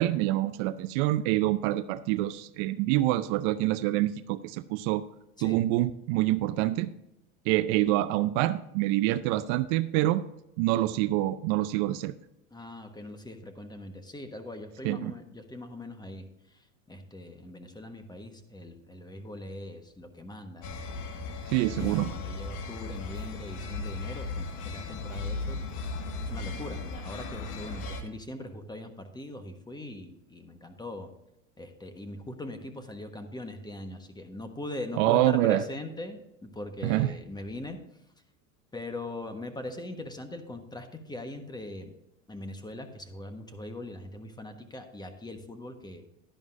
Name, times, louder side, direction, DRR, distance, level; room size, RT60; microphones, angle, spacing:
voice 1, 0.0-5.0 5.4-6.9 7.5-10.2 10.6-12.1 14.8-15.1 21.5-22.1 35.0-35.6 36.8-37.1, right 15 dB, 55° right, 14 dB, 0.6 m, -26 dB
voice 2, 12.5-16.3 16.9-21.0 21.5-26.0 26.2-31.1 31.6-37.8 38.7-41.9 42.3-46.0, left 1 dB, 10° left, 7 dB, 1.3 m, -41 dB
church bells with traffic close, 20.6-28.0, left 3 dB, 55° left, 1.8 m, -36 dB
11.5 x 10.5 x 2.6 m, 0.87 s
hypercardioid pair, 95°, 40 cm